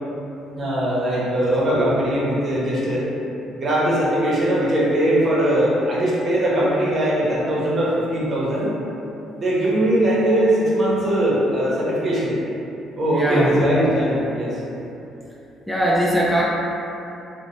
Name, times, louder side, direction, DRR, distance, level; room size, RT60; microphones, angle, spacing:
voice 1, 0.6-3.1 3.6-8.7 9.4-12.3 13.0-14.6, right 1 dB, 45° right, -7 dB, 0.8 m, -20 dB
voice 2, 13.1-13.6 15.7-16.5, equal, 5° left, -5 dB, 0.4 m, -20 dB
2.9 x 2.1 x 2.5 m, 2.9 s
supercardioid pair, 70°, 0 cm